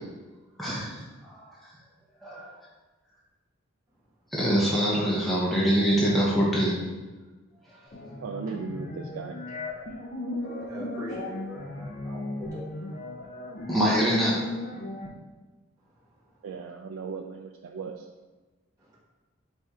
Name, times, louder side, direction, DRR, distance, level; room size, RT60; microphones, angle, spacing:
voice 1, 0.6-1.4 2.2-2.5 4.3-6.8 13.7-14.5, equal, ahead, -7 dB, 0.7 m, -24 dB
sound 1, 7.9-15.1, left 1 dB, 40° left, 0.6 m, -36 dB
voice 2, 8.2-9.3 16.4-18.1, right 5 dB, 75° right, 2 dB, 0.3 m, -37 dB
voice 3, 10.7-12.2 12.5-12.6, equal, 15° right, -11 dB, 1.4 m, -40 dB
4.3 x 3.3 x 3.6 m, 1.3 s
head